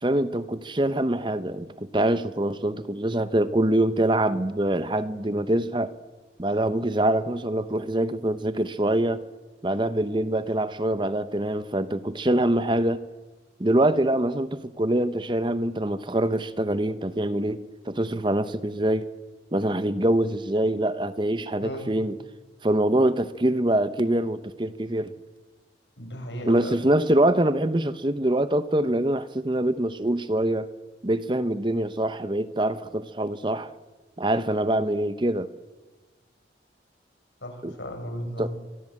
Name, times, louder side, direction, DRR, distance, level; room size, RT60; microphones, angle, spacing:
voice 1, 0.0-5.9 6.4-9.2 9.6-13.0 13.6-19.1 19.5-22.2 22.6-25.1 26.4-30.7 31.0-33.7 34.2-35.5 37.6-37.7 38.4-38.5, right 1 dB, 25° right, 0.9 m, -24 dB
voice 2, 26.0-26.8 37.4-38.5, equal, 85° left, 7.0 m, -35 dB
24.5 x 23.5 x 8.7 m
head